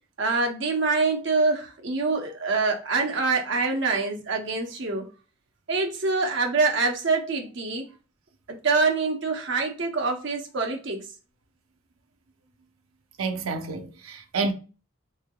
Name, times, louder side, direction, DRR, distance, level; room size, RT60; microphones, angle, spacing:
voice 1, 0.2-5.1 5.7-7.8 8.5-11.0, right 3 dB, 60° right, 0.8 m, -25 dB
voice 2, 13.2-14.5, right 3 dB, 85° right, 0.6 m, -29 dB
3.5 x 3.3 x 2.2 m
head